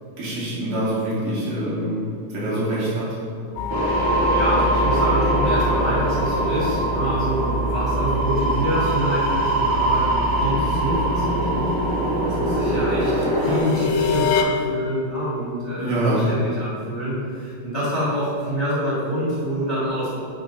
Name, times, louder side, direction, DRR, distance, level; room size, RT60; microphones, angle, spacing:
voice 1, 0.2-2.0 2.3-3.0 15.7-16.2, right 1 dB, 70° right, -8 dB, 3.5 m, -25 dB
sound 1, 3.6-14.4, left 1 dB, 80° left, 2.3 m, -27 dB
sound 2, 3.7-13.6, right 1 dB, 50° right, 1.0 m, -23 dB
voice 2, 4.3-20.1, equal, 40° left, -8 dB, 0.9 m, -26 dB
9.0 x 3.1 x 5.3 m, 2.4 s
omnidirectional pair, 4.0 m